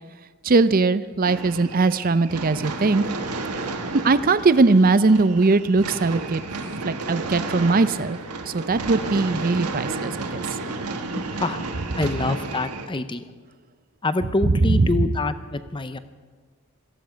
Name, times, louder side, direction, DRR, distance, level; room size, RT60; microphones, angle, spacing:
voice 1, 0.4-3.0 4.0-6.4 6.8-8.2 8.5-10.4 14.4-15.1, right 3 dB, 40° right, 14 dB, 0.5 m, -20 dB
sound 1, 1.2-12.9, right 3 dB, 90° right, 1.5 m, -32 dB
voice 2, 11.1-11.6 11.9-13.2 14.0-16.0, left 2 dB, 20° left, 12 dB, 0.6 m, -26 dB
17.5 x 14.5 x 5.1 m, 1.5 s
head